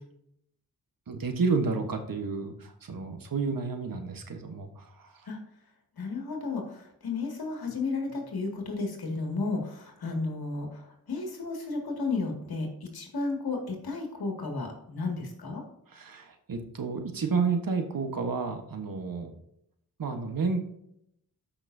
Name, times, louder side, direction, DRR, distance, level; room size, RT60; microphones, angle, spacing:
voice 1, 1.1-5.1 15.9-19.3 20.0-20.6, right 4 dB, 60° right, 5 dB, 1.4 m, -31 dB
voice 2, 6.0-10.8 11.1-12.7 12.9-15.6, left 3 dB, 70° left, 2 dB, 2.3 m, -33 dB
13.0 x 5.8 x 2.7 m, 0.76 s
cardioid pair, 60°, 38 cm